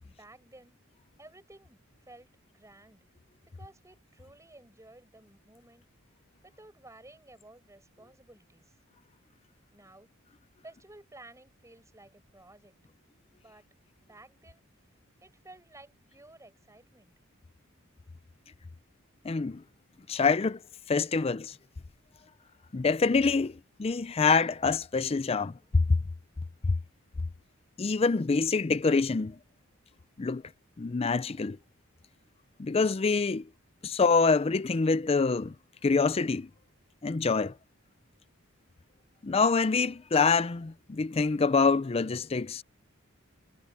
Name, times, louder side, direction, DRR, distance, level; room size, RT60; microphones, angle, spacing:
voice 1, 0.0-0.8 1.2-3.1 3.5-5.9 6.4-8.8 9.7-10.1 10.6-12.7 13.4-13.7 14.0-14.6 15.2-17.1, right 2 dB, 15° right, 7.2 m, -54 dB
voice 2, 19.2-19.6 20.1-20.6 20.9-21.6 22.7-25.8 27.8-29.4 30.2-30.4 30.8-31.6 32.6-33.5 33.8-35.5 35.8-36.5 37.0-37.5 39.2-42.6, left 4 dB, 30° left, 0.4 m, -26 dB
head